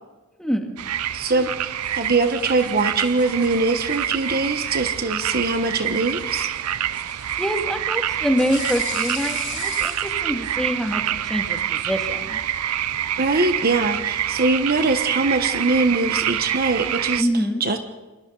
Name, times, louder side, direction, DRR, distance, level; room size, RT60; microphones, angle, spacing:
voice 1, 0.4-0.8 7.4-12.4 17.2-17.6, equal, 5° left, 3 dB, 2.0 m, -25 dB
sound 1, 0.8-17.2, right 11 dB, 85° right, 0.6 m, -27 dB
voice 2, 1.1-6.5 13.2-17.3 17.6-17.8, right 3 dB, 45° right, 7 dB, 1.2 m, -22 dB
sound 2, 1.8-11.0, left 8 dB, 55° left, 6.6 m, -41 dB
28.5 x 23.5 x 4.0 m, 1.2 s
head